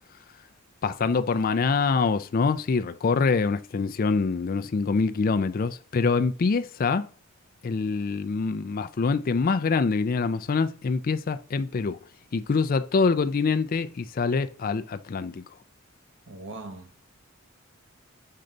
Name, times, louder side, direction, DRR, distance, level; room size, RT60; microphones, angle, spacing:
voice 1, 0.8-7.1 7.6-12.0 12.3-15.4, left 4 dB, 45° left, 0.4 m, -25 dB
voice 2, 16.3-17.1, right 2 dB, 65° right, 1.3 m, -41 dB
6.5 x 4.5 x 3.8 m
head